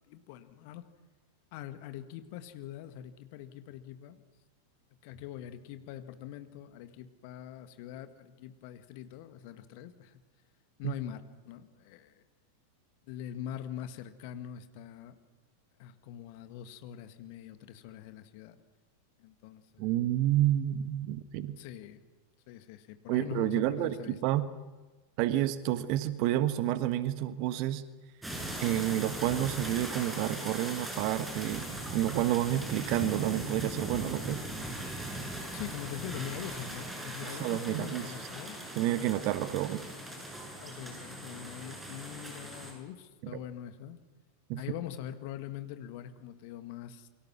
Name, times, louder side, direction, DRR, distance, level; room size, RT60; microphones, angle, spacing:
voice 1, 0.1-0.9 1.5-4.2 5.0-10.2 10.8-12.2 13.1-15.2 15.8-18.6 19.2-19.9 21.6-22.0 22.5-24.2 35.5-38.6 40.6-44.0 44.6-47.1, left 11 dB, 45° left, 10 dB, 1.9 m, -43 dB
voice 2, 19.8-21.6 23.1-24.4 25.2-27.8 28.6-31.7 31.9-34.4 37.2-38.1 38.8-39.8 44.5-44.6, right 13 dB, 45° right, 13 dB, 1.4 m, -29 dB
sound 1, 28.2-42.7, right 1 dB, 10° right, 7.0 m, -40 dB
28.5 x 23.5 x 6.2 m, 1.3 s
figure-of-eight pair, 90°, 0 cm